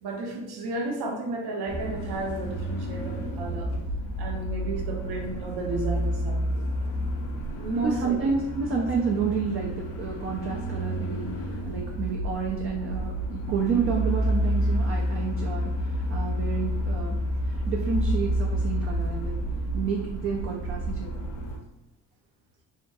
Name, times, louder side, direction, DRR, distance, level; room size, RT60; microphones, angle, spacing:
voice 1, 0.0-3.7 4.2-6.9 7.5-8.2 8.8-8.9, right 2 dB, 50° right, 0 dB, 0.8 m, -33 dB
sound 1, 1.7-21.6, right 1 dB, 55° left, 0.7 m, -29 dB
voice 2, 7.7-17.2 17.5-19.4 19.7-21.3, right 5 dB, 30° right, -1 dB, 0.4 m, -30 dB
2.6 x 2.2 x 2.6 m, 0.87 s
hypercardioid pair, 50°, 48 cm